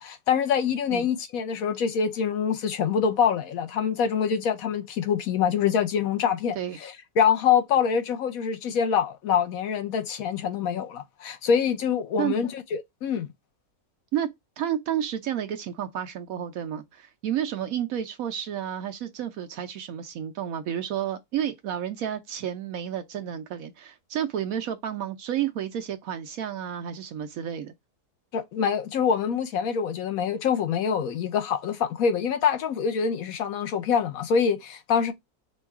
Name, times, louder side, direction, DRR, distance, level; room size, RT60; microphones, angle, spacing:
voice 1, 0.0-13.3 28.3-35.1, left 7 dB, 65° left, 1.0 m, -25 dB
voice 2, 14.6-27.7, right 10 dB, 70° right, 0.9 m, -31 dB
4.4 x 2.3 x 4.6 m
omnidirectional pair, 1.7 m